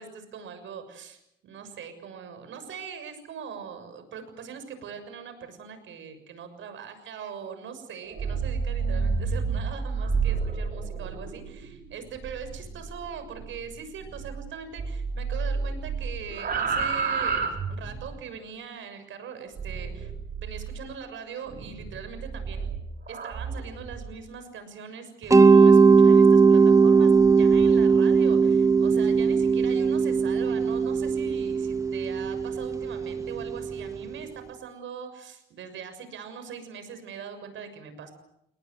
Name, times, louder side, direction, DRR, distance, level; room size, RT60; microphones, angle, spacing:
voice 1, 0.0-20.1 20.4-22.7 23.1-38.1, right 6 dB, 75° right, 9 dB, 6.8 m, -41 dB
sound 1, 8.0-14.5 14.8-18.2 19.6-20.8 21.5-24.1, right 5 dB, 50° right, 7.0 m, -31 dB
Mallet percussion, 25.3-34.1, right 5 dB, 15° right, 1.1 m, -19 dB
29.5 x 20.5 x 8.0 m, 0.81 s
cardioid pair, 90°, 20 cm